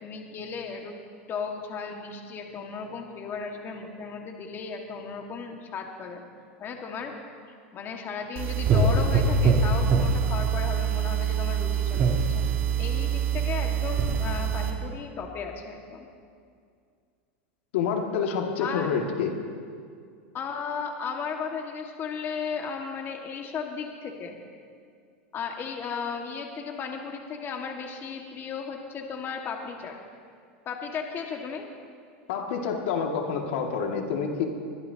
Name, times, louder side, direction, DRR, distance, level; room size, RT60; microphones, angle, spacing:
voice 1, 0.0-0.9 1.3-6.2 6.6-7.1 7.7-12.4 12.8-16.1 18.6-18.9 20.3-24.4 25.3-30.0 30.7-31.7, left 5 dB, 35° left, 2 dB, 1.9 m, -35 dB
sound 1, 8.4-14.7, right 5 dB, 40° right, 3.5 m, -24 dB
voice 2, 17.7-19.3 32.3-34.4, left 6 dB, 70° left, 1 dB, 2.2 m, -28 dB
22.5 x 21.5 x 2.9 m, 2.2 s
hypercardioid pair, 115°, 7 cm